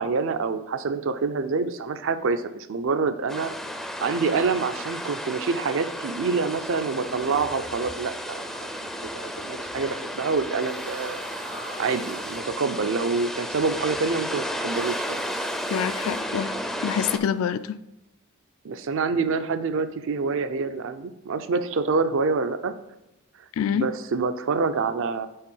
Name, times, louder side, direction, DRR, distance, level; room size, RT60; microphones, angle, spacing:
voice 1, 0.0-3.5 4.0-8.9 9.1-11.2 11.8-15.3 18.6-22.7 23.7-25.3, right 4 dB, 60° right, 10 dB, 0.5 m, -26 dB
sound 1, 3.3-17.2, equal, ahead, 0.4 m, -33 dB
sound 2, 7.5-17.7, right 3 dB, 90° right, 1.5 m, -47 dB
voice 2, 15.7-16.6 16.8-17.8 23.6-23.9, left 8 dB, 70° left, 13 dB, 0.3 m, -26 dB
5.5 x 4.1 x 5.4 m, 0.92 s
head